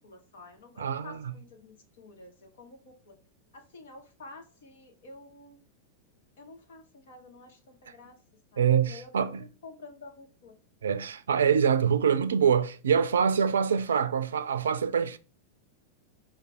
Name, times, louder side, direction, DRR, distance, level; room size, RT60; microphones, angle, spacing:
voice 1, 0.0-3.1 3.5-5.6 6.4-8.2 8.5-10.5, left 3 dB, 60° left, 1.2 m, -50 dB
voice 2, 0.8-1.2 8.6-9.4 10.8-15.2, right 7 dB, 65° right, 0.4 m, -25 dB
5.0 x 2.3 x 4.5 m
figure-of-eight pair, 90°, 0 cm